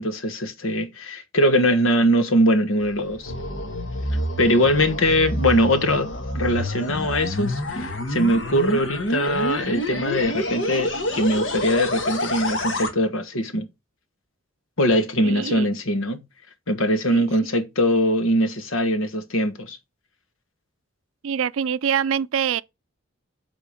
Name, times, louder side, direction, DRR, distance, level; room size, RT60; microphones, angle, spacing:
voice 1, 0.0-3.3 4.4-13.6 14.8-16.2 16.7-19.8, equal, 75° left, 1.4 m, -22 dB
sound 1, 2.8-12.9, left 1 dB, 60° left, 1.6 m, -28 dB
voice 2, 15.2-15.7 17.1-17.3 21.2-22.6, right 8 dB, 75° right, 0.4 m, -24 dB
8.3 x 3.9 x 5.1 m
head